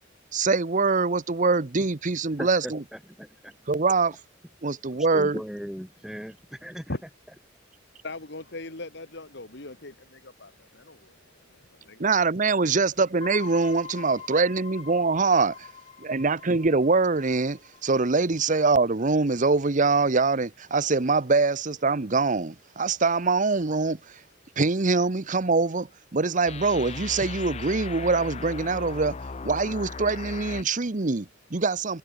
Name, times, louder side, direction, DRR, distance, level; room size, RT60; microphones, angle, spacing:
voice 1, 0.3-2.8 3.7-4.2 4.6-5.4 12.0-15.7 16.0-24.2 24.6-29.2 29.4-32.0, right 3 dB, 40° right, 0.9 m, -24 dB
voice 2, 2.4-3.5 4.9-6.9, equal, ahead, 1.1 m, -38 dB
voice 3, 8.0-11.2 11.5-12.0, left 2 dB, 60° left, 2.6 m, -39 dB
sound 1, 13.2-18.1 18.5-18.6 26.5-30.6, left 4 dB, 35° left, 0.6 m, -39 dB
head